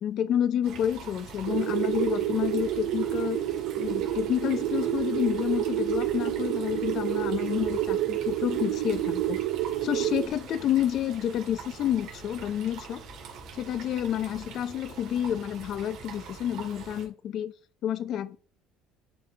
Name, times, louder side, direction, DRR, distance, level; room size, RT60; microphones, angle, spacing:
voice 1, 0.0-3.4 3.8-9.4 9.8-13.0 13.5-17.5 17.8-18.4, left 10 dB, 55° left, 0.7 m, -29 dB
sound 1, 0.6-17.1, right 5 dB, 60° right, 2.4 m, -44 dB
sound 2, 1.5-10.3, right 13 dB, 80° right, 0.6 m, -29 dB
9.5 x 4.8 x 3.4 m
cardioid pair, 125°, 0 cm